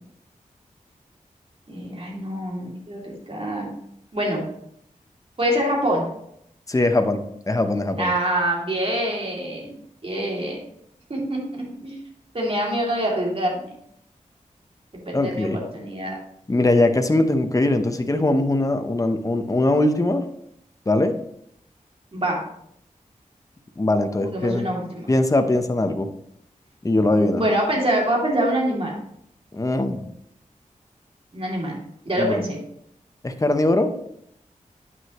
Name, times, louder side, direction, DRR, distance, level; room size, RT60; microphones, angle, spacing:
voice 1, 1.7-3.7 4.1-4.5 5.4-6.1 8.0-9.8 10.0-10.6 11.1-12.0 12.3-13.7 14.9-16.1 22.1-22.4 24.2-25.1 27.4-28.9 31.3-32.6, right 1 dB, 45° right, -2 dB, 2.6 m, -25 dB
voice 2, 6.7-8.1 15.1-15.6 16.5-20.2 20.9-21.1 23.8-24.7 25.1-26.1 26.8-27.4 29.5-30.0 32.2-32.4 33.2-33.9, left 2 dB, 25° left, 7 dB, 0.8 m, -21 dB
9.4 x 6.1 x 3.0 m, 0.73 s
wide cardioid pair, 60°, 14 cm